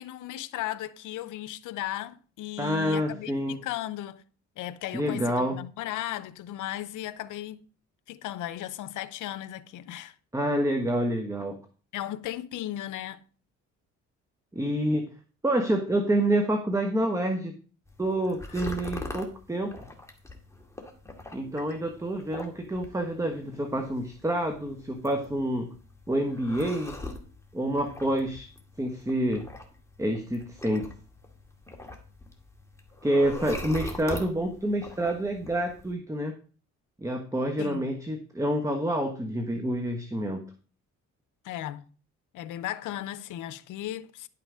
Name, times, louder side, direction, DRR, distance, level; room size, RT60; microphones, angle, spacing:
voice 1, 0.0-4.2 4.6-7.6 8.1-10.1 11.9-13.2 37.6-37.9 41.4-41.8 42.3-44.3, left 13 dB, 85° left, 0.7 m, -36 dB
voice 2, 2.6-3.6 4.9-5.6 10.3-11.6 14.5-15.1 15.4-17.5 18.0-19.8 21.3-25.7 26.1-27.0 27.5-28.5 28.8-29.4 30.0-30.9 33.0-36.4 37.0-40.4, right 1 dB, 10° right, 1.2 m, -28 dB
sound 1, 17.9-35.9, left 2 dB, 10° left, 2.0 m, -43 dB
11.0 x 5.9 x 5.0 m
cardioid pair, 90°, 30 cm